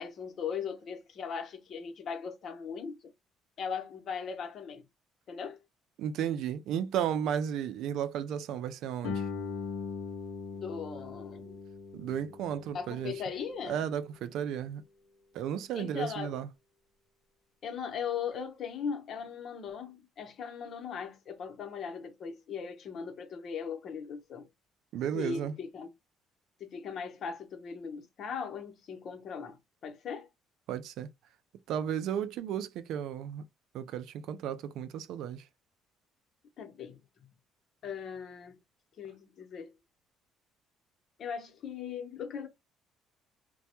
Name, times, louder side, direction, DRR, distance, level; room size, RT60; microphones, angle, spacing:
voice 1, 0.0-3.0 3.6-4.9 5.3-5.6 10.5-11.6 12.7-13.8 15.7-16.3 17.6-24.5 25.1-25.9 26.6-30.3 36.6-37.3 37.8-38.6 39.0-39.7 41.2-42.5, left 6 dB, 55° left, 0.8 m, -39 dB
voice 2, 6.0-9.2 11.9-13.1 13.6-14.8 15.3-16.5 24.9-25.5 30.7-31.1 31.7-33.4 33.7-35.4, right 9 dB, 75° right, 0.3 m, -34 dB
Guitar, 9.0-14.4, left 5 dB, 90° left, 0.7 m, -41 dB
2.2 x 2.0 x 2.8 m
supercardioid pair, 75°, 0 cm